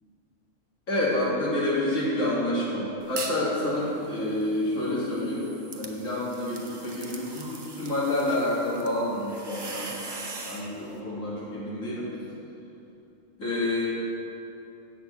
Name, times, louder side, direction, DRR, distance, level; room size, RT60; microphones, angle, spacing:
voice 1, 0.9-5.5 5.7-9.9 10.4-12.1 13.4-13.9, left 1 dB, 85° left, -7 dB, 2.8 m, -28 dB
sound 1, 3.0-3.5 3.9-10.7, right 3 dB, 30° right, 0.5 m, -41 dB
8.0 x 6.4 x 7.1 m, 2.9 s
omnidirectional pair, 1.3 m